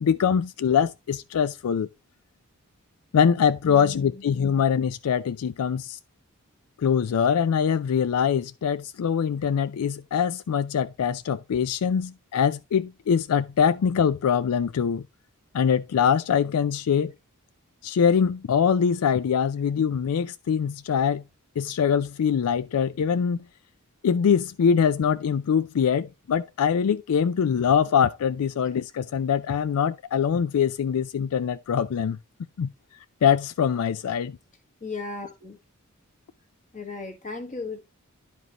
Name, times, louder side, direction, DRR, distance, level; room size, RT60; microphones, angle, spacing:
voice 1, 0.0-1.9 3.1-6.0 6.8-15.0 15.5-17.1 17.8-21.2 21.6-23.4 24.0-32.2 32.6-32.7 33.2-34.4, left 7 dB, 85° left, 0.4 m, -23 dB
voice 2, 3.7-4.2 34.8-35.6 36.7-37.8, left 3 dB, 35° left, 1.6 m, -36 dB
11.0 x 5.2 x 3.0 m
head